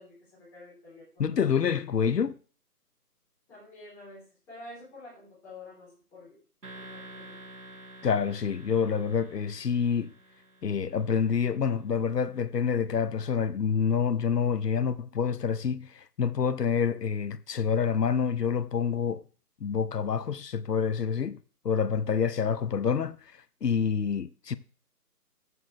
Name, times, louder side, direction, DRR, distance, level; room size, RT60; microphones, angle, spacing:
voice 1, 0.0-1.4 3.5-6.4 6.7-7.4, left 2 dB, 5° left, 3.5 m, -49 dB
voice 2, 1.2-2.4 8.0-10.1 10.6-19.2 19.6-21.4 21.6-23.2 23.6-24.6, left 6 dB, 80° left, 0.9 m, -27 dB
sound 1, 6.6-11.5, right 2 dB, 90° right, 4.9 m, -49 dB
14.0 x 6.3 x 3.2 m
hypercardioid pair, 175°, 47 cm